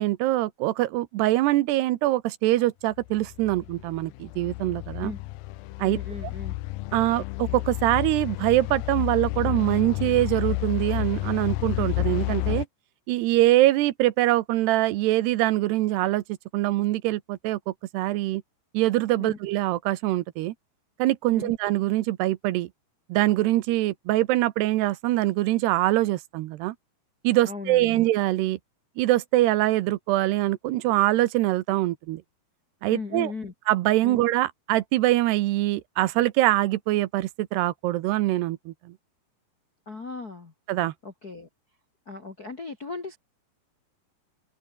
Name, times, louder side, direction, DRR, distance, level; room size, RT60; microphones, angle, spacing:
voice 1, 0.0-5.1 5.8-6.0 6.9-12.7 13.1-16.2 16.5-18.4 18.7-20.5 21.0-22.7 23.1-26.8 27.2-28.6 29.0-32.2 32.8-33.3 33.7-38.9 40.7-40.9, right 16 dB, 80° right, 2.9 m, -23 dB
sound 1, 3.0-12.7, left 18 dB, 80° left, 2.1 m, -31 dB
voice 2, 5.8-6.5 19.2-19.4 21.3-21.5 27.4-28.1 32.9-33.5 34.0-34.2 39.8-40.5 41.0-41.5 42.0-43.2, left 4 dB, 40° left, 1.4 m, -37 dB
open air
omnidirectional pair, 4.9 m